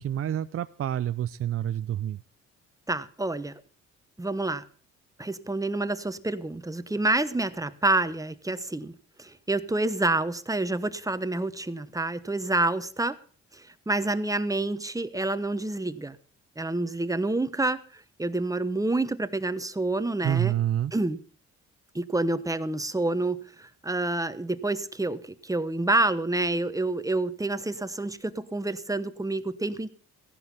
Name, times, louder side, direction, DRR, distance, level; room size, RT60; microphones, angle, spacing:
voice 1, 0.0-2.2 20.2-20.9, right 11 dB, 50° right, 12 dB, 0.6 m, -28 dB
voice 2, 2.9-3.5 4.2-4.6 5.2-8.9 9.2-13.2 13.5-16.2 16.6-17.8 18.2-20.5 20.9-21.2 21.9-29.9, right 2 dB, 10° right, 13 dB, 1.1 m, -28 dB
15.5 x 11.0 x 5.6 m, 0.44 s
cardioid pair, 90°, 30 cm